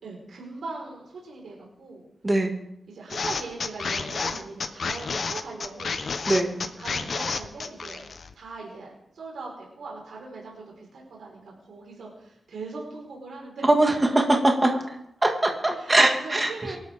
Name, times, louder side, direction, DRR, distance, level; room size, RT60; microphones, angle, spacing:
voice 1, 0.0-2.0 2.9-6.0 6.5-8.0 8.3-13.6 15.7-16.8, right 3 dB, 80° right, -2 dB, 4.7 m, -40 dB
sound 1, 3.1-8.3, left 4 dB, 50° left, 1.0 m, -30 dB
voice 2, 13.8-14.7 15.2-16.5, right 1 dB, 20° right, 2 dB, 2.1 m, -21 dB
24.5 x 12.0 x 3.7 m, 0.80 s
wide cardioid pair, 155°, 0 cm